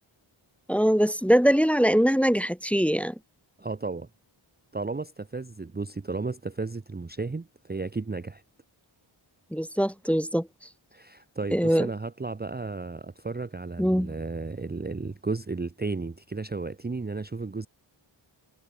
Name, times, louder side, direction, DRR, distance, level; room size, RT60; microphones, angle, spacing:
voice 1, 0.7-3.1 9.5-10.5 11.5-11.9 13.8-14.1, equal, 5° left, 1.0 m, -22 dB
voice 2, 3.6-4.1 4.7-8.4 10.9-17.7, right 3 dB, 20° right, 0.7 m, -33 dB
wide cardioid pair, 70°, 49 cm